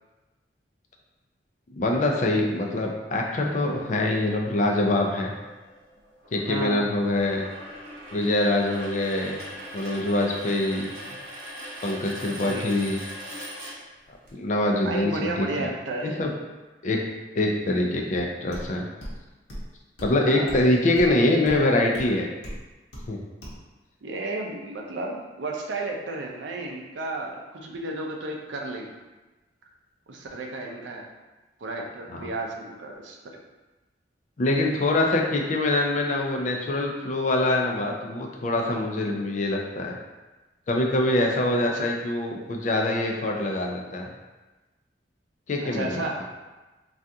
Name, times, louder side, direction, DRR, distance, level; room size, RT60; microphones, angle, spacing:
voice 1, 1.7-5.3 6.3-7.5 8.1-9.4 9.7-10.9 11.8-13.0 14.3-15.7 16.0-16.3 16.8-17.0 17.4-18.9 20.0-22.3 23.1-23.2 32.1-32.3 34.4-40.0 40.7-44.1 45.5-46.2, left 1 dB, 40° left, 0 dB, 0.4 m, -24 dB
sound 1, 3.7-14.3, equal, 55° right, 0.9 m, -41 dB
voice 2, 6.5-6.9 12.5-12.8 14.8-16.3 20.2-20.5 24.0-28.9 30.1-31.0 31.6-33.2 41.7-41.9 45.6-46.2, right 2 dB, 75° right, 1 dB, 0.5 m, -33 dB
sound 2, 18.5-18.7 19.0-19.2 19.5-19.7 20.0-20.1 20.5-20.6 21.0-21.1 21.5-21.6 21.9-22.1 22.4-22.6 22.9-23.1 23.4-23.6, equal, 60° left, 0.8 m, -37 dB
2.7 x 2.4 x 3.4 m, 1.2 s
head